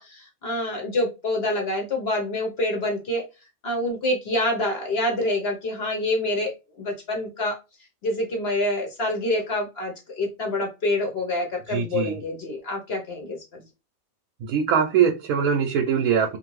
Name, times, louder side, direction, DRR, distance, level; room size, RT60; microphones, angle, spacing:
voice 1, 0.0-3.2 3.6-7.6 8.0-13.6, left 1 dB, 55° left, 1 dB, 0.9 m, -27 dB
voice 2, 11.7-12.2 14.4-16.4, right 7 dB, 80° right, 2 dB, 1.0 m, -22 dB
2.6 x 2.5 x 3.0 m, 0.27 s
omnidirectional pair, 1.5 m